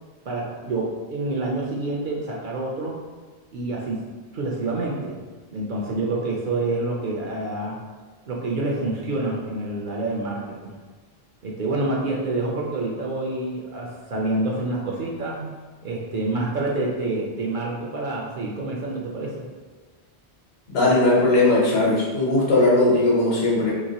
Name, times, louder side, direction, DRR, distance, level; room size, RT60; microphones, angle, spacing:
voice 1, 0.3-3.0 3.5-4.0 4.3-5.2 5.5-7.8 8.3-10.8 11.4-15.5 15.8-19.5, right 2 dB, 60° right, -2 dB, 0.6 m, -27 dB
voice 2, 20.7-23.7, left 2 dB, 65° left, -5 dB, 1.1 m, -19 dB
2.9 x 2.9 x 2.8 m, 1.4 s
omnidirectional pair, 1.1 m